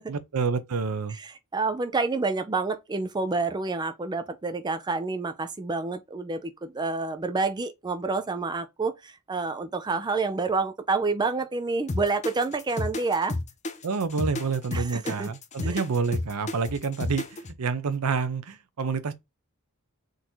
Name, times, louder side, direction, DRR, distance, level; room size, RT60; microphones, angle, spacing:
voice 1, 0.1-1.2 13.8-19.1, right 5 dB, 90° right, 0.6 m, -28 dB
voice 2, 1.2-13.4 14.7-15.3 15.6-15.8, right 3 dB, 20° right, 0.4 m, -28 dB
sound 1, 11.9-17.5, left 2 dB, 30° left, 0.5 m, -31 dB
3.8 x 2.7 x 4.3 m
head